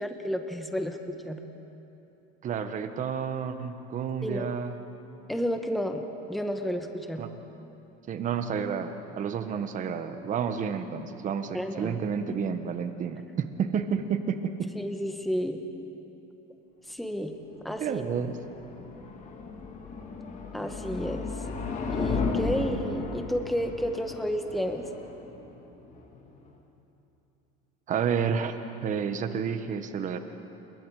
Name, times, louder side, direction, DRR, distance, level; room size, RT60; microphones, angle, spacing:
voice 1, 0.0-1.4 4.2-4.5 5.3-6.0 6.3-7.3 11.5-12.0 14.7-15.6 16.9-18.0 20.5-21.3 21.9-24.9, equal, ahead, 5 dB, 1.4 m, -31 dB
voice 2, 2.4-4.7 7.2-7.3 8.1-14.7 17.8-18.4 27.9-28.5 28.8-30.2, right 7 dB, 35° right, 8 dB, 1.5 m, -30 dB
sound 1, 17.5-26.5, left 4 dB, 35° left, 2.7 m, -35 dB
28.0 x 22.5 x 5.0 m, 2.9 s
supercardioid pair, 120°, 21 cm